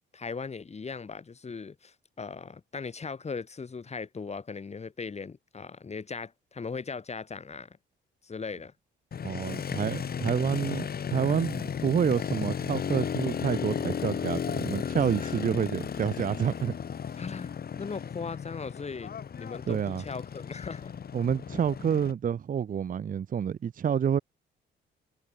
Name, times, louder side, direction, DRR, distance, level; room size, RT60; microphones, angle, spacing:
voice 1, 0.1-7.8 8.2-8.7 15.2-15.3 17.2-17.5 17.8-20.9, left 5 dB, 35° left, 4.8 m, -39 dB
Motorcycle, 9.1-22.1, left 7 dB, 50° left, 4.3 m, -34 dB
voice 2, 9.2-16.7 19.7-20.0 21.1-24.2, right 8 dB, 45° right, 0.9 m, -28 dB
cardioid pair, 90°, 20 cm